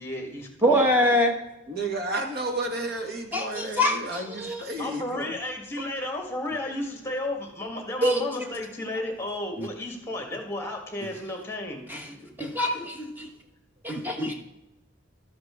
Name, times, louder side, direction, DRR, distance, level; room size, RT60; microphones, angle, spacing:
voice 1, 0.0-1.1 4.8-12.5, left 1 dB, 15° left, 2 dB, 1.5 m, -33 dB
voice 2, 0.6-1.4 3.3-4.6 8.0-8.2 9.6-9.7 11.0-11.1 11.9-12.1 12.4-13.3 13.8-14.3, equal, 10° right, 2 dB, 1.2 m, -24 dB
voice 3, 1.7-5.3, right 2 dB, 55° right, 2 dB, 1.6 m, -32 dB
12.5 x 7.6 x 3.7 m, 0.93 s
head